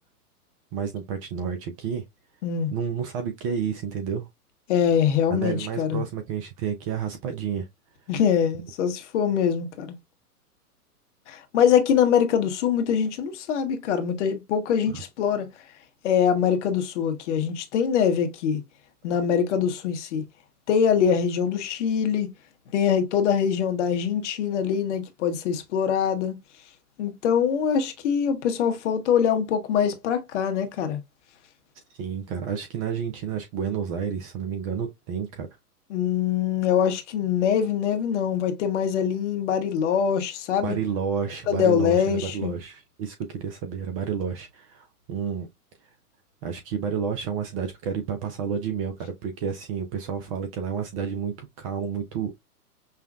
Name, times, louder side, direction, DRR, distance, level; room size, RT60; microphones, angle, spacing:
voice 1, 0.7-2.0 2.7-4.3 5.3-7.7 32.0-35.5 40.6-45.5 46.4-52.4, right 7 dB, 25° right, 0.5 m, -30 dB
voice 2, 4.7-6.0 8.1-10.0 11.3-15.5 16.0-18.6 19.0-20.2 20.7-22.3 22.7-26.4 27.0-31.0 35.9-40.8 41.5-42.5, left 8 dB, 50° left, 1.0 m, -23 dB
5.6 x 2.2 x 2.3 m
hypercardioid pair, 120°, 46 cm